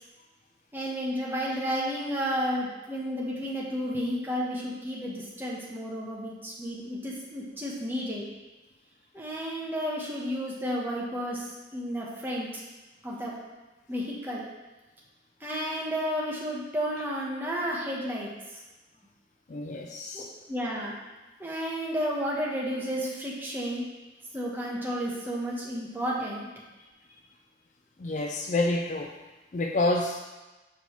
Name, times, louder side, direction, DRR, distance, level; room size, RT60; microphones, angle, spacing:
voice 1, 0.7-8.3 9.1-12.5 13.0-13.3 13.9-14.4 15.4-18.6 20.1-21.0 21.4-23.8 24.3-26.5, equal, 10° right, -5 dB, 1.0 m, -32 dB
voice 2, 19.5-20.3 28.0-29.1 29.5-30.2, left 2 dB, 40° left, 3 dB, 0.4 m, -28 dB
6.5 x 5.2 x 3.1 m, 1.1 s
head